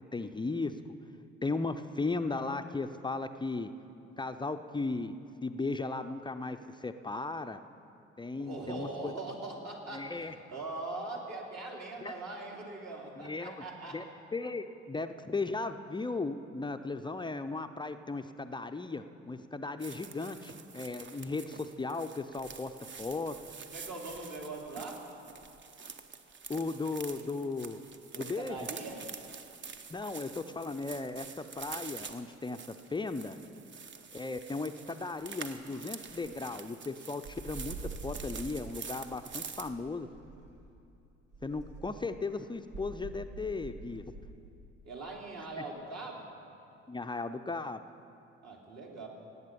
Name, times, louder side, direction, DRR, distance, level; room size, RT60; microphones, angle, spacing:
voice 1, 0.1-0.7 1.4-3.7 4.2-7.6 8.2-9.1 9.9-10.3 12.0-12.1 13.1-13.6 13.9-14.0 14.3-22.7 23.0-23.3 26.5-27.8 28.1-28.7 29.9-32.6 32.9-33.4 34.1-37.8 38.0-40.1 41.4-44.0 45.6-45.7 46.9-47.8, left 3 dB, 15° left, 8 dB, 0.5 m, -36 dB
voice 2, 8.4-10.0 10.5-14.0 23.7-25.0 28.1-29.0 44.8-46.3 48.4-49.1, right 2 dB, 50° right, -2 dB, 2.9 m, -41 dB
sound 1, 19.8-39.7, right 5 dB, 35° right, 0.9 m, -47 dB
sound 2, 37.2-38.5 39.4-40.7 41.3-42.0 42.7-44.3, right 3 dB, 70° right, 2.1 m, -45 dB
18.0 x 8.1 x 5.2 m, 2.7 s
hypercardioid pair, 50°, 33 cm